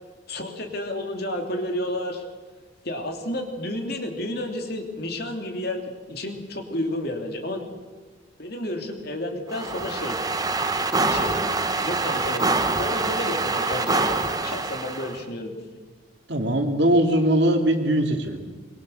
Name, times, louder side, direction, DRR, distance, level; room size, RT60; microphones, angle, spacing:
voice 1, 0.3-2.2 2.8-7.6 8.4-10.2 11.0-15.6, left 1 dB, 50° left, 4 dB, 3.0 m, -31 dB
sound 1, 9.5-15.2, right 3 dB, 20° right, 1.0 m, -25 dB
voice 2, 16.3-18.4, right 1 dB, 55° right, 4 dB, 2.8 m, -21 dB
25.0 x 23.0 x 6.6 m, 1.3 s
head